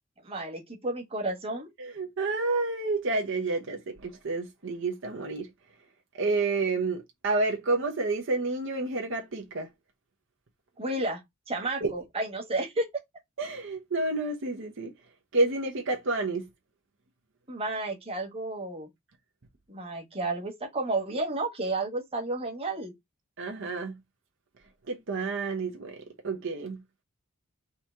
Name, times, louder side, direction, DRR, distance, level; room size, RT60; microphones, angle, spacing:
voice 1, 0.2-1.7 10.8-11.2 11.5-12.9 17.5-18.9 19.7-22.9, right 2 dB, 30° right, 1.4 m, -32 dB
voice 2, 1.8-5.5 6.1-9.7 11.8-11.9 13.4-14.9 15.3-16.5 23.4-24.0 24.9-26.8, right 3 dB, 65° right, 0.9 m, -29 dB
3.9 x 2.9 x 4.6 m
head